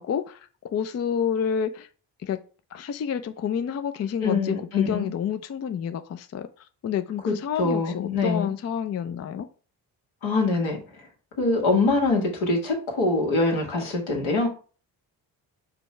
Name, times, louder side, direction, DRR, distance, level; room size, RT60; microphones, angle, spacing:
voice 1, 0.0-1.9 2.2-2.4 2.7-9.5, left 8 dB, 35° left, 0.4 m, -29 dB
voice 2, 4.2-5.1 7.2-8.5 10.2-10.8 11.4-14.5, left 3 dB, 70° left, 1.6 m, -24 dB
5.2 x 2.3 x 4.2 m
hypercardioid pair, 45°, 49 cm